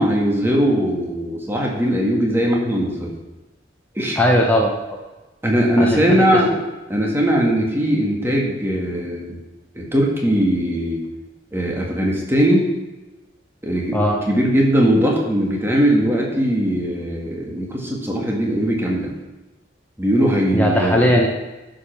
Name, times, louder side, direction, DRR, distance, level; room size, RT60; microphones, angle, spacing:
voice 1, 0.0-3.1 4.0-4.2 5.4-6.5 6.9-9.4 9.7-11.0 11.5-12.7 13.6-14.0 14.3-19.1 20.0-21.1, equal, 15° right, -2 dB, 1.9 m, -19 dB
voice 2, 4.2-4.7 5.8-6.0 13.9-14.2 20.5-21.3, equal, 10° left, -1 dB, 0.9 m, -17 dB
11.5 x 5.3 x 6.0 m, 1.1 s
head